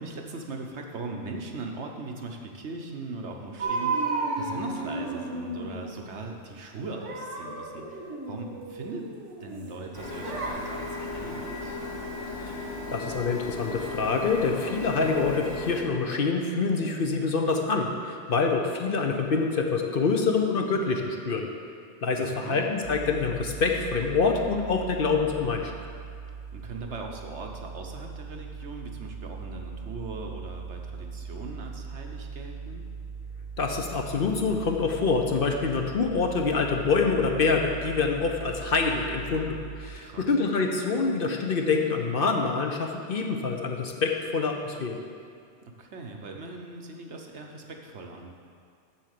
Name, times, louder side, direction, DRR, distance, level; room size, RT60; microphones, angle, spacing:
voice 1, 0.0-9.1 9.4-11.8 22.2-22.7 26.5-32.8 40.0-40.3 45.7-48.4, right 3 dB, 70° right, 2 dB, 1.2 m, -39 dB
sound 1, 3.6-6.1 6.7-9.7 10.2-10.5, right 3 dB, 85° right, 1.8 m, -33 dB
Printer, 9.9-15.8, left 2 dB, 70° left, 2.5 m, -36 dB
voice 2, 12.9-21.5 22.0-25.7 33.6-45.0, left 4 dB, 55° left, 3 dB, 0.9 m, -26 dB
sound 2, 22.8-40.0, right 5 dB, 50° right, 0.4 m, -40 dB
7.5 x 7.2 x 6.7 m, 2.3 s
omnidirectional pair, 1.2 m